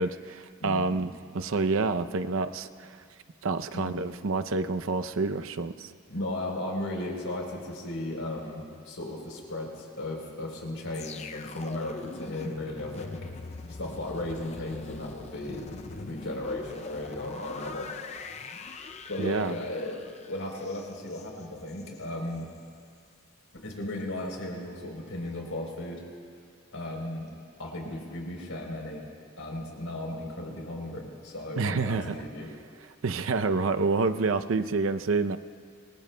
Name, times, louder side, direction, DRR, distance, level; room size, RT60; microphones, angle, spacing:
voice 1, 0.0-2.9 3.4-5.9 19.2-19.6 31.6-32.1 33.0-35.4, right 3 dB, 75° right, 10 dB, 0.6 m, -28 dB
voice 2, 0.6-1.0 3.7-4.1 6.1-13.3 13.7-17.9 19.1-22.5 23.6-26.0 26.7-27.3 27.6-29.0 29.4-32.5, left 1 dB, 85° left, 0 dB, 3.6 m, -36 dB
sound 1, 10.9-22.0 22.4-22.6, left 3 dB, 30° left, 0.4 m, -43 dB
27.0 x 22.0 x 2.2 m, 2.2 s
head